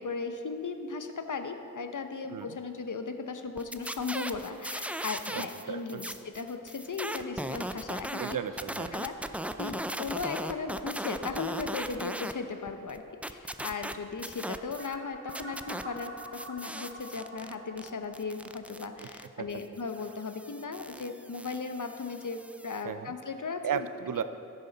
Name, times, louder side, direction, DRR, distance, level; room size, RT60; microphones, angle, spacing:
voice 1, 0.0-8.4 8.9-13.0 13.3-23.9, left 4 dB, 65° left, 7 dB, 0.8 m, -37 dB
sound 1, 3.6-5.6 5.9-12.3 12.7-15.0 15.3-22.8, right 1 dB, 5° right, 0.4 m, -38 dB
voice 2, 5.3-6.0 8.2-9.0 19.4-19.5 22.8-23.1 23.6-24.2, right 8 dB, 75° right, 11 dB, 0.5 m, -35 dB
sound 2, 14.8-19.6, right 1 dB, 40° right, 1.7 m, -47 dB
11.0 x 9.3 x 4.0 m, 2.8 s
wide cardioid pair, 50°, 33 cm